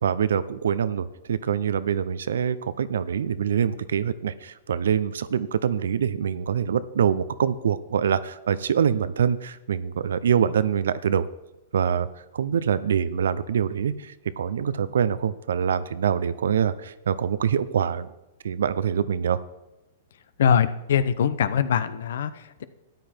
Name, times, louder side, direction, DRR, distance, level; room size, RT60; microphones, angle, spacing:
voice 1, 0.0-11.3 11.7-12.1 12.3-18.1 18.4-19.4, right 8 dB, 80° right, 15 dB, 0.7 m, -25 dB
voice 2, 20.4-22.6, left 7 dB, 70° left, 14 dB, 0.8 m, -23 dB
13.5 x 9.4 x 4.5 m, 0.98 s
hypercardioid pair, 120°, 0 cm